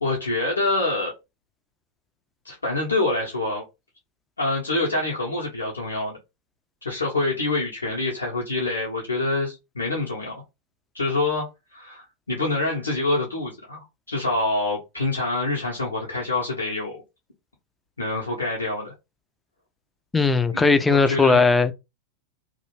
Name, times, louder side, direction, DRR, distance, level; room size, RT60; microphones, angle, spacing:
voice 1, 0.0-1.1 2.4-3.6 4.4-6.2 6.8-10.3 10.9-17.0 18.0-18.9 20.5-21.4, left 2 dB, 75° left, 0.6 m, -26 dB
voice 2, 20.1-21.7, left 4 dB, 10° left, 0.3 m, -18 dB
2.4 x 2.0 x 3.0 m
figure-of-eight pair, 90°, 0 cm